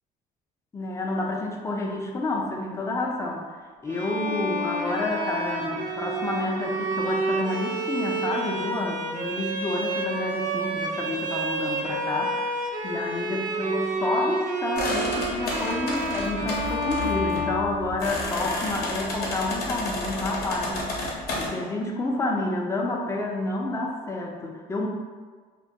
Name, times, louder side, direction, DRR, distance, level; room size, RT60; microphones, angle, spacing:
voice 1, 0.7-12.6 12.8-24.9, left 2 dB, 15° left, 0 dB, 0.3 m, -29 dB
Bowed string instrument, 3.9-18.2, right 1 dB, 50° right, 0.4 m, -29 dB
sound 1, 14.8-21.5, left 2 dB, 65° left, 0.6 m, -31 dB
2.2 x 2.2 x 2.6 m, 1.5 s
cardioid pair, 110°, 17 cm